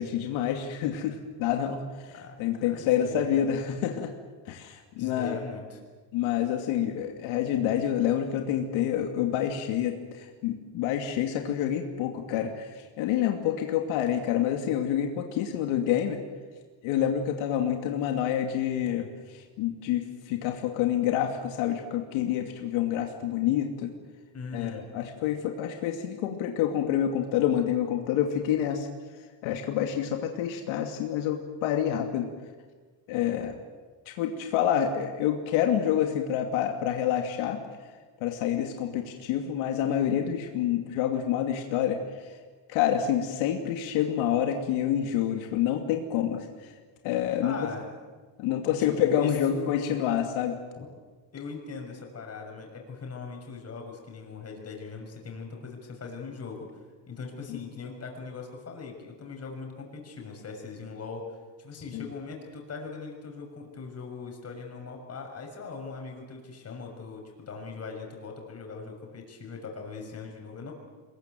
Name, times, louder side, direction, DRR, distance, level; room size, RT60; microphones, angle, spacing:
voice 1, 0.0-4.1 4.5-5.4 6.1-16.2 16.8-23.9 24.5-28.9 29.4-32.3 33.1-33.6 34.1-37.6 38.2-42.0 42.7-46.7 47.0-47.7 48.4-50.6 57.5-57.6 61.9-62.0, left 10 dB, 85° left, 4 dB, 2.7 m, -28 dB
voice 2, 2.1-3.5 5.0-5.8 24.3-24.8 47.4-47.9 48.8-50.0 50.8-50.9 51.3-56.7 57.1-61.2 61.6-70.7, left 4 dB, 30° left, 2 dB, 6.3 m, -40 dB
24.0 x 22.0 x 9.3 m, 1.4 s
cardioid pair, 140°, 47 cm